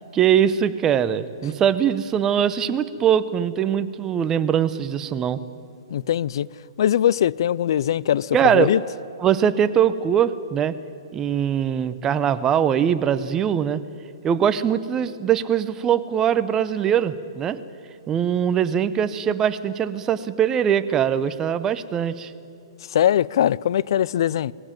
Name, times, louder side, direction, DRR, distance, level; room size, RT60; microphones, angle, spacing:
voice 1, 0.1-5.4 8.3-8.8 9.2-10.8 11.1-13.8 14.2-17.6 18.1-22.3, right 9 dB, 20° right, 0.8 m, -21 dB
voice 2, 5.9-6.5 6.8-8.8 22.9-24.5, left 10 dB, 65° left, 0.4 m, -21 dB
20.0 x 16.0 x 9.1 m
hypercardioid pair, 140°, 3 cm